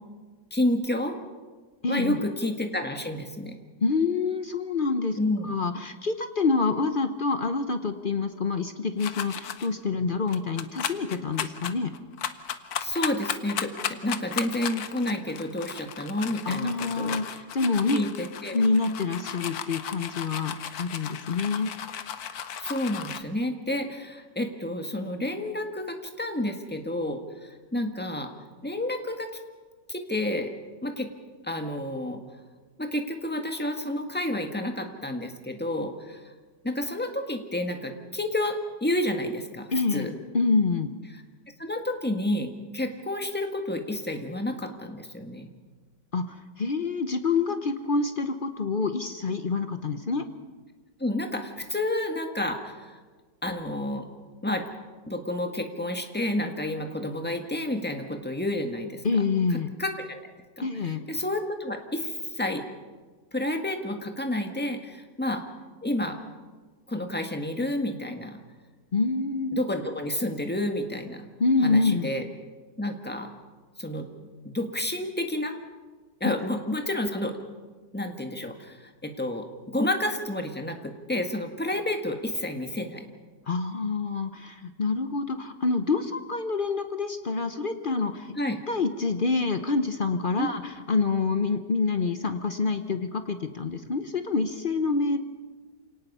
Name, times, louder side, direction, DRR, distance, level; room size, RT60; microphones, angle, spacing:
voice 1, 0.5-1.2 1.9-3.5 5.2-5.5 12.8-17.2 17.9-18.6 22.6-28.3 28.6-29.3 29.9-30.5 30.8-31.1 31.4-32.2 32.8-36.3 36.6-40.1 41.6-45.5 51.0-53.0 53.4-54.0 54.4-54.6 55.1-59.2 59.5-60.2 60.6-60.7 61.1-62.6 63.3-65.4 65.8-66.2 66.9-68.4 69.5-71.3 71.6-72.2 72.8-73.3 73.8-74.1 74.4-75.5 76.2-77.4 77.9-83.1 88.3-88.6 90.4-90.5, left 1 dB, 5° left, 4 dB, 1.4 m, -30 dB
voice 2, 1.8-2.2 3.8-5.2 5.4-11.9 16.4-18.0 18.5-21.7 39.7-40.9 46.1-50.3 59.0-59.7 60.6-61.0 68.9-69.6 71.4-72.1 83.5-88.4 88.7-95.2, left 4 dB, 45° left, 8 dB, 0.7 m, -27 dB
sound 1, 9.0-9.7 10.3-23.2, left 9 dB, 65° left, 1.4 m, -35 dB
28.0 x 18.5 x 5.5 m, 1.4 s
omnidirectional pair, 1.9 m